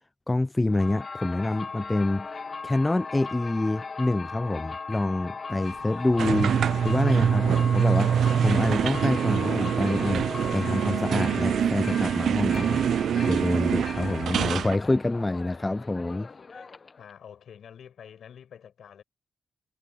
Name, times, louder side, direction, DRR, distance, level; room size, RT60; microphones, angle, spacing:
voice 1, 0.3-2.3 2.6-10.2 10.5-12.8 13.2-16.3, left 2 dB, 20° left, 0.4 m, -27 dB
sound 1, 0.7-17.1, left 4 dB, 50° left, 1.1 m, -38 dB
sound 2, 6.2-14.8, right 8 dB, 80° right, 0.5 m, -25 dB
voice 2, 16.5-19.0, left 8 dB, 80° left, 7.4 m, -48 dB
cardioid pair, 55°, 0 cm